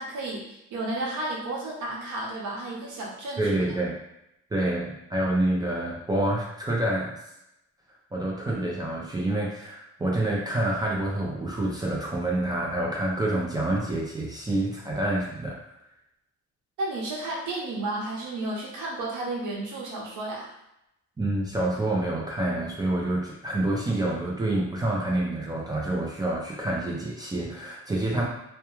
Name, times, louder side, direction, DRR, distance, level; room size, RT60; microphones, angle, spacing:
voice 1, 0.0-3.8 16.8-20.5, right 2 dB, 80° right, -2 dB, 0.8 m, -32 dB
voice 2, 3.4-4.0 4.5-7.2 8.1-15.6 21.2-28.2, right 1 dB, 15° right, -3 dB, 0.4 m, -27 dB
2.3 x 2.1 x 2.9 m, 0.84 s
cardioid pair, 140°, 30 cm